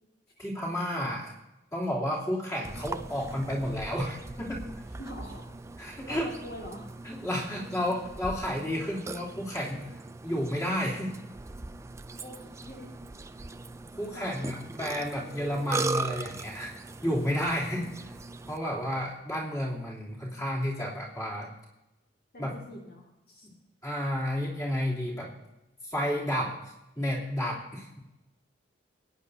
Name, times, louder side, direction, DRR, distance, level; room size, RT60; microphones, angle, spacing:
voice 1, 0.4-1.3 1.7-4.8 5.8-6.3 7.0-9.8 10.2-11.1 14.0-16.7 17.0-17.9 18.5-21.5 22.4-22.5 23.4-23.5 23.8-25.3 25.8-28.0, equal, 20° left, -6 dB, 3.1 m, -31 dB
Burping eructation, 2.6-18.6, right 3 dB, 15° right, 0.4 m, -39 dB
voice 2, 5.0-5.5 6.1-6.9 12.2-12.9 14.1-14.5 17.8-18.1 22.3-23.5, equal, 55° left, -2 dB, 2.1 m, -45 dB
23.0 x 9.9 x 2.8 m, 0.95 s
head